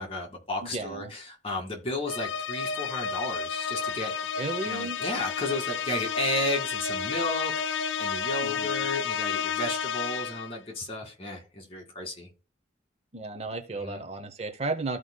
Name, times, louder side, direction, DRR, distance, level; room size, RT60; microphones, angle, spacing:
voice 1, 0.0-4.3 4.6-12.3 13.7-14.0, left 2 dB, 30° left, 2.0 m, -33 dB
voice 2, 0.6-1.1 4.4-5.0 8.4-8.7 13.1-15.0, right 3 dB, 35° right, 0.7 m, -34 dB
sound 1, 2.1-10.6, left 6 dB, 85° left, 0.4 m, -31 dB
14.0 x 4.9 x 2.2 m
head